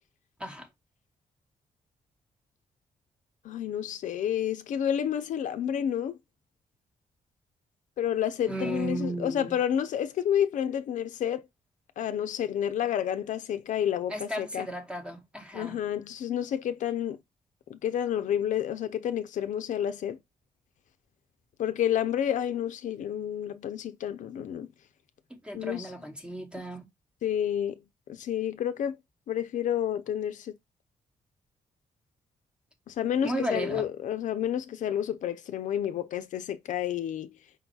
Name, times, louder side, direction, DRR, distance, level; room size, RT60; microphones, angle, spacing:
voice 1, 3.4-6.2 8.0-11.4 12.0-14.7 15.5-17.2 17.7-20.2 21.6-24.7 25.5-25.9 27.2-27.7 28.1-29.0 29.3-30.5 32.9-37.3, left 10 dB, 75° left, 0.5 m, -30 dB
voice 2, 8.5-9.6 14.1-15.8 25.4-26.9 33.2-33.9, right 1 dB, 10° right, 0.9 m, -35 dB
5.1 x 2.3 x 3.9 m
cardioid pair, 125°, 13 cm